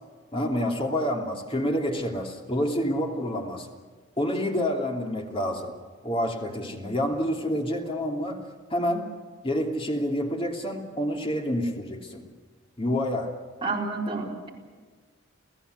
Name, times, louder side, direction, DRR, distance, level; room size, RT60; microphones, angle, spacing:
voice 1, 0.3-3.7 4.2-5.7 6.0-8.4 8.7-9.1 9.4-12.2 12.8-13.3, equal, 30° left, 2 dB, 3.0 m, -28 dB
voice 2, 13.6-14.5, right 3 dB, 25° right, -2 dB, 4.6 m, -29 dB
29.5 x 16.0 x 8.1 m, 1.5 s
head